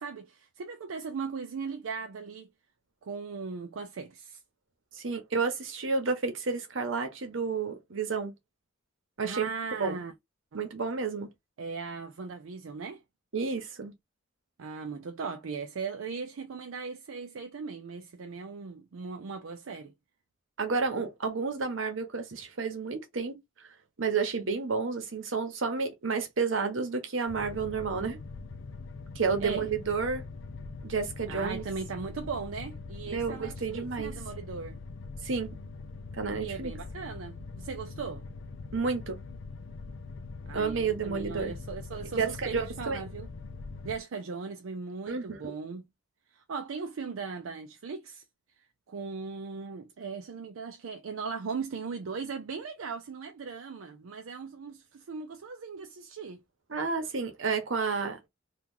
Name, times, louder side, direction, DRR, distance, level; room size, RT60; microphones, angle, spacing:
voice 1, 0.0-2.5 3.0-4.4 9.2-10.1 10.5-10.7 11.6-13.0 14.6-19.9 29.4-29.7 31.3-34.8 36.4-38.2 40.5-43.3 43.8-45.8 46.3-48.2 48.9-56.4, right 5 dB, 85° right, 0.5 m, -38 dB
voice 2, 4.9-8.3 9.2-9.5 9.8-10.0 10.5-11.3 13.3-13.9 20.6-23.3 24.0-28.2 29.1-30.2 30.8-31.6 33.1-34.1 35.2-35.5 36.2-36.7 38.7-39.2 40.5-41.5 42.2-43.1 45.1-45.5 56.7-58.3, right 5 dB, 70° right, 1.0 m, -31 dB
sound 1, 27.3-44.0, left 3 dB, 65° left, 0.4 m, -42 dB
2.9 x 2.4 x 3.6 m
head